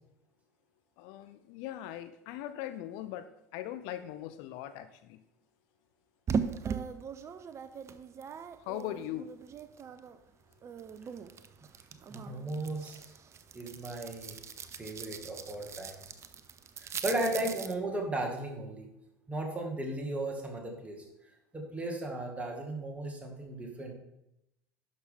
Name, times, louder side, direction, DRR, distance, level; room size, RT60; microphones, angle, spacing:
voice 1, 1.0-5.2 8.6-9.3 17.1-17.2, left 12 dB, 55° left, 11 dB, 0.5 m, -40 dB
sound 1, 6.3-10.2 10.5-17.7, right 6 dB, 30° right, 0.6 m, -40 dB
voice 2, 12.1-13.0 13.5-14.3 14.8-16.0 16.8-18.9 19.3-21.0 21.5-23.9, right 1 dB, 15° right, 1 dB, 2.1 m, -35 dB
11.0 x 6.0 x 3.7 m, 0.84 s
figure-of-eight pair, 75°, 9 cm